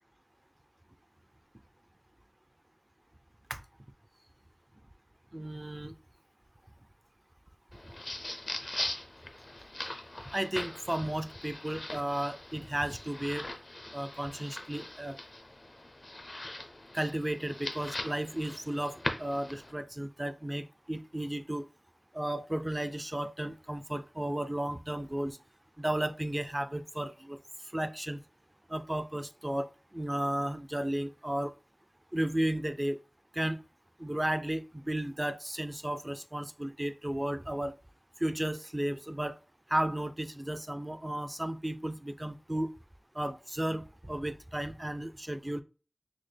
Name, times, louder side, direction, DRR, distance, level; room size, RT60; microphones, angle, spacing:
voice 1, 5.3-5.9 10.3-13.5 13.9-15.2 16.9-21.6 22.1-25.4 25.8-27.4 27.7-28.2 28.7-31.5 32.1-33.0 33.3-33.6 34.0-37.7 38.2-39.4 39.7-42.7 43.2-45.6, right 1 dB, 25° right, 0.3 m, -34 dB
sound 1, 7.7-19.7, left 1 dB, 60° left, 0.5 m, -41 dB
3.9 x 2.2 x 3.3 m
wide cardioid pair, 55°, 0 cm